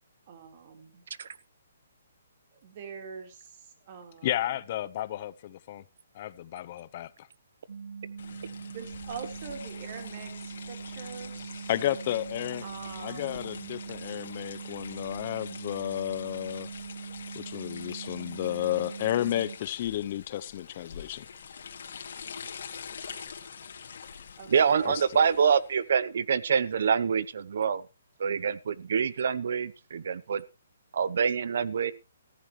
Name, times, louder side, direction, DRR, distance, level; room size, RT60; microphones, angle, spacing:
voice 1, 0.3-1.0 2.5-4.4 8.7-11.7 12.6-13.7 24.4-25.1, right 6 dB, 40° right, 3.9 m, -44 dB
voice 2, 4.2-5.8 6.1-7.3 11.7-12.7 13.0-16.7 17.3-21.3 24.8-25.2, left 13 dB, 40° left, 0.7 m, -32 dB
sound 1, 7.7-19.6, right 6 dB, 85° right, 3.1 m, -42 dB
sound 2, 8.2-25.9, left 6 dB, 65° left, 2.5 m, -45 dB
voice 3, 24.5-27.8 28.2-30.4 30.9-31.9, right 6 dB, 60° right, 0.8 m, -26 dB
15.5 x 14.5 x 3.2 m
hypercardioid pair, 160°, 0 cm